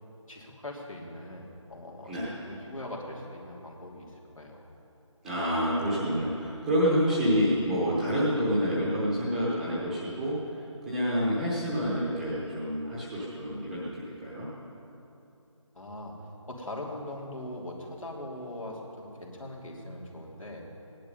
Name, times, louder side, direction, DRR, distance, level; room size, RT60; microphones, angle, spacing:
voice 1, 0.3-4.6 15.7-20.6, left 1 dB, 85° left, -1 dB, 3.1 m, -41 dB
voice 2, 5.2-10.5 10.9-14.5, equal, 5° right, -8 dB, 0.9 m, -28 dB
17.5 x 11.0 x 5.4 m, 2.9 s
figure-of-eight pair, 165°, 17 cm